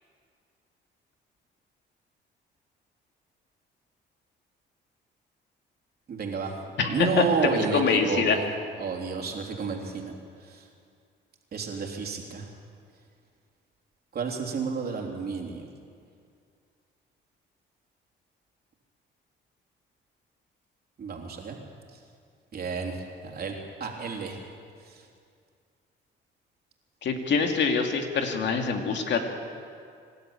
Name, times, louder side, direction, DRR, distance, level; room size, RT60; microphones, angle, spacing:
voice 1, 6.1-6.6 6.9-8.5 8.8-10.1 10.4-10.7 11.5-12.5 14.1-15.7 21.0-21.6 21.9-22.0 22.5-24.4 24.8-25.1, right 5 dB, 50° right, 1 dB, 3.5 m, -31 dB
voice 2, 6.8-8.4 27.0-29.2, left 5 dB, 65° left, 4 dB, 2.3 m, -25 dB
24.5 x 12.5 x 8.9 m, 2.3 s
cardioid pair, 90°, 20 cm